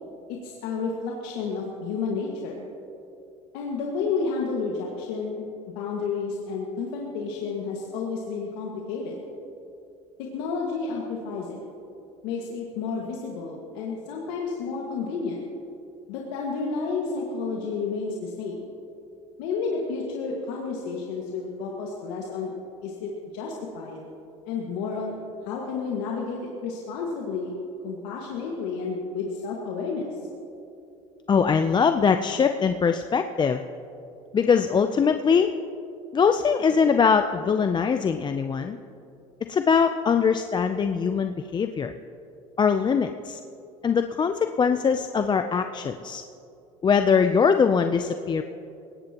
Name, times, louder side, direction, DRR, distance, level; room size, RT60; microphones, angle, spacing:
voice 1, 0.3-2.6 3.5-5.4 5.8-9.2 10.2-11.6 12.2-15.4 16.1-18.6 19.4-22.5 22.8-24.0 24.5-25.1 25.4-27.5 27.8-30.3, left 4 dB, 80° left, -2 dB, 1.9 m, -31 dB
voice 2, 31.3-33.6 34.3-35.5 36.1-38.8 39.5-41.9 42.6-43.4 43.8-46.2 46.8-48.4, left 6 dB, 30° left, 8 dB, 0.6 m, -22 dB
21.0 x 17.5 x 3.0 m, 2.7 s
supercardioid pair, 85°, 16 cm